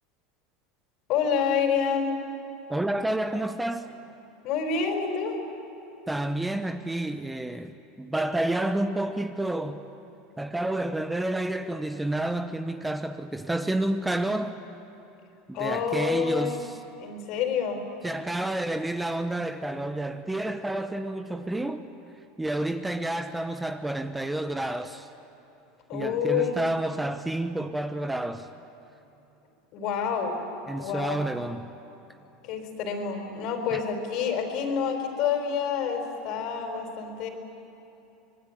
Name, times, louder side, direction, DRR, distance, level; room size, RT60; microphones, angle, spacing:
voice 1, 1.1-2.2 4.4-5.4 15.5-16.6 17.0-17.8 25.9-26.6 29.7-30.4 30.8-31.2 32.4-37.3, left 6 dB, 55° left, 4.4 m, -28 dB
voice 2, 2.7-3.9 6.1-9.8 10.4-14.6 15.5-16.8 18.0-21.9 22.4-25.1 25.9-28.5 30.7-31.7 33.7-33.8, right 1 dB, 10° right, 0.9 m, -29 dB
26.0 x 20.5 x 9.3 m
supercardioid pair, 125°, 0 cm